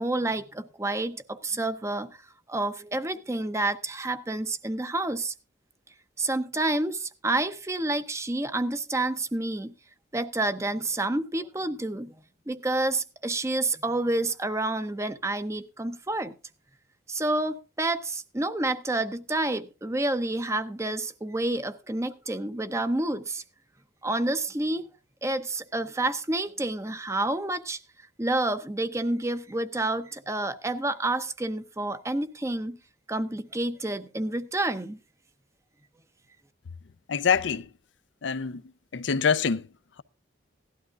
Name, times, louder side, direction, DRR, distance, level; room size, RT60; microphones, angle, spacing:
voice 1, 0.0-2.1 2.5-5.3 6.2-9.7 10.1-12.1 12.5-16.3 17.1-23.4 24.0-24.9 25.2-27.8 28.2-32.8 33.1-35.0, right 2 dB, 15° right, 0.6 m, -29 dB
voice 2, 37.1-37.7 38.2-38.6 38.9-39.7, left 6 dB, 75° left, 0.5 m, -25 dB
17.0 x 12.0 x 2.4 m
head